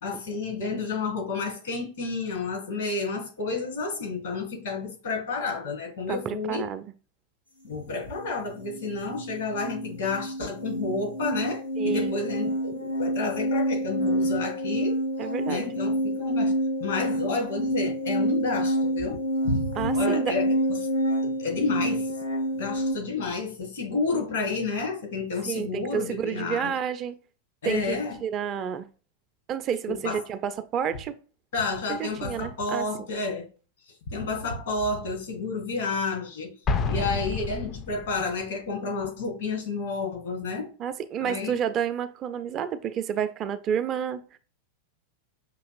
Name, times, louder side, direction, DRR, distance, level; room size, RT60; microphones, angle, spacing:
voice 1, 0.0-6.6 7.6-15.0 15.5-16.5 16.8-20.8 21.2-22.1 22.5-26.7 27.6-28.2 29.9-30.2 31.5-33.5 34.1-36.5 36.9-40.7 41.2-41.6, left 3 dB, 60° left, 1.7 m, -30 dB
voice 2, 6.1-6.8 11.8-12.1 15.2-15.7 19.7-20.4 25.4-27.2 27.6-28.9 29.5-31.1 31.9-32.9 40.8-44.4, right 8 dB, 30° right, 0.4 m, -30 dB
sound 1, 8.2-8.3 8.6-22.9, equal, 85° left, 1.0 m, -28 dB
Explosion, 36.7-38.3, left 4 dB, 30° left, 0.4 m, -29 dB
5.9 x 2.8 x 2.4 m
figure-of-eight pair, 90°, 0 cm